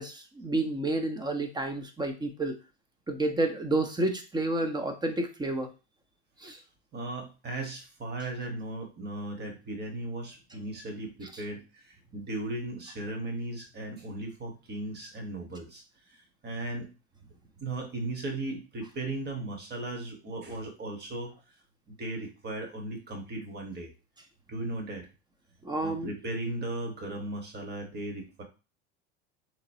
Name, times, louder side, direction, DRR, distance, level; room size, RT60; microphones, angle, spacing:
voice 1, 0.0-2.5 3.1-5.7 6.4-6.6 25.6-26.1, right 2 dB, 10° right, 6 dB, 0.7 m, -30 dB
voice 2, 6.9-15.8 16.1-16.9 17.6-21.3 21.9-23.9 24.5-25.1 25.8-28.4, right 2 dB, 30° right, 3 dB, 1.3 m, -37 dB
3.8 x 3.0 x 2.7 m, 0.30 s
hypercardioid pair, 95°, 34 cm